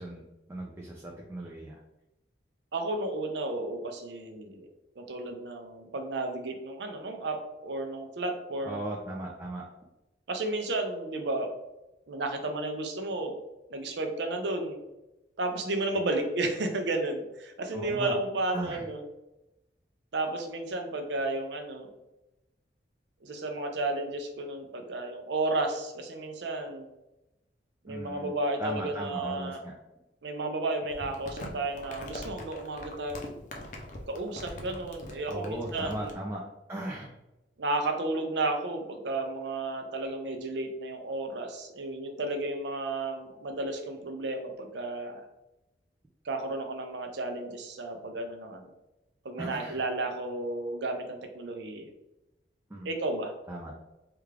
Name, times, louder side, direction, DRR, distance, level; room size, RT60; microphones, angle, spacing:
voice 1, 0.0-1.8 8.7-9.6 15.9-16.1 17.7-18.2 18.5-18.8 27.9-28.3 28.6-29.7 35.3-36.4 36.7-37.1 49.4-49.8 52.7-52.9 53.5-53.8, right 1 dB, 15° right, -2 dB, 0.4 m, -37 dB
voice 2, 2.7-4.7 5.0-7.4 7.6-8.9 10.3-11.5 12.1-13.3 13.7-14.8 15.4-19.0 20.1-21.9 23.2-26.9 27.8-29.6 30.2-33.4 34.1-36.2 37.6-45.2 46.2-48.7 49.2-51.9 52.8-53.3, right 2 dB, 75° right, 4 dB, 0.6 m, -33 dB
Crumpling crinkling, 30.9-36.1, left 1 dB, 45° left, 0.5 m, -42 dB
3.4 x 2.4 x 3.2 m, 0.95 s
head